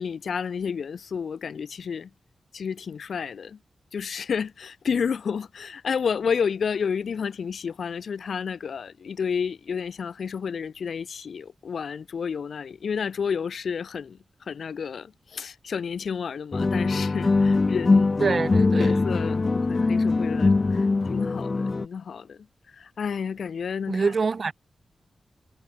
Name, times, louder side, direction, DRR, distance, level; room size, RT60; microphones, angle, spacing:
voice 1, 0.0-2.1 2.5-3.6 3.9-14.2 14.5-18.1 18.8-22.4 22.7-24.1, left 6 dB, 75° left, 3.0 m, -30 dB
sound 1, 16.5-21.9, left 3 dB, 30° left, 1.8 m, -22 dB
voice 2, 18.2-18.9 23.9-24.5, right 4 dB, 45° right, 2.6 m, -25 dB
wide cardioid pair, 165°, 0 cm